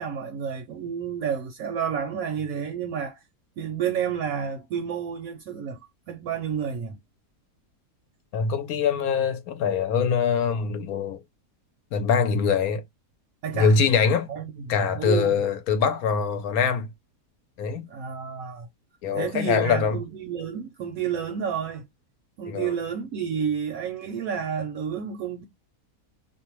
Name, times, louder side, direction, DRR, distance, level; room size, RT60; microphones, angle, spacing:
voice 1, 0.0-3.2 3.6-5.8 6.1-7.0 13.4-13.8 14.3-14.5 14.9-15.4 17.9-18.7 19.1-21.9 22.4-25.4, right 7 dB, 70° right, 0.9 m, -30 dB
voice 2, 8.3-11.2 11.9-12.8 13.5-14.3 14.7-16.9 17.6-17.9 19.0-20.0 22.5-22.7, left 6 dB, 75° left, 1.0 m, -23 dB
2.6 x 2.1 x 2.9 m
omnidirectional pair, 1.7 m